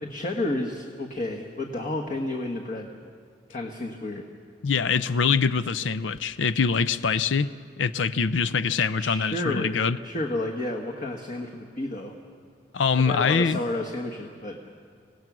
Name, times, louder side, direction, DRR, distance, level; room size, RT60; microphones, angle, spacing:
voice 1, 0.0-2.9 3.5-4.2 9.0-9.7 10.0-12.1 13.0-14.6, left 1 dB, 45° left, 1 dB, 1.4 m, -31 dB
voice 2, 4.6-7.5 7.8-10.0 12.7-13.6, left 5 dB, 85° left, 15 dB, 0.5 m, -24 dB
26.0 x 17.5 x 6.1 m, 2.2 s
head